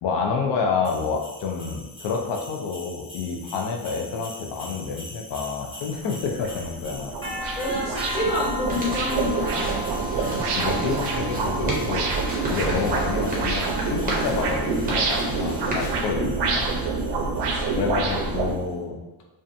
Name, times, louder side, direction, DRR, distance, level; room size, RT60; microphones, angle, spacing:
voice 1, 0.0-7.2 10.4-12.2 12.4-16.7 17.8-19.0, left 5 dB, 70° left, 1 dB, 0.6 m, -28 dB
sound 1, 0.8-18.6, left 1 dB, 10° left, 1.3 m, -39 dB
sound 2, 5.6-5.7 6.2-18.5, right 4 dB, 65° right, 0.5 m, -27 dB
voice 2, 7.6-9.7 10.1-10.5 12.7-12.9 16.0-16.8 17.5-17.9, left 2 dB, 55° left, -12 dB, 1.2 m, -30 dB
sound 3, 8.7-15.9, right 1 dB, 20° right, 0.5 m, -35 dB
2.7 x 2.2 x 2.5 m, 1.1 s
cardioid pair, 135°, 44 cm